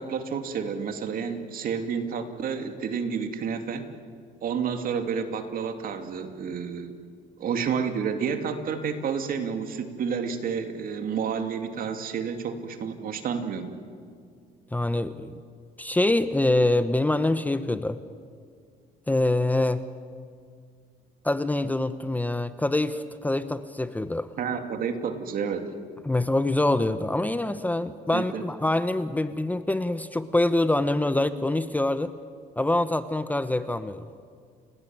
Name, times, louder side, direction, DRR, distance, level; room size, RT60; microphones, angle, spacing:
voice 1, 0.0-3.9 4.4-6.9 7.4-13.7 24.4-25.7 28.1-28.4, right 6 dB, 60° right, 7 dB, 2.7 m, -30 dB
voice 2, 14.7-15.4 15.8-18.0 19.1-19.9 21.2-24.3 26.0-32.1 32.6-34.1, left 2 dB, 10° left, 12 dB, 0.9 m, -25 dB
30.0 x 18.0 x 9.1 m, 2.1 s
cardioid pair, 110°, 17 cm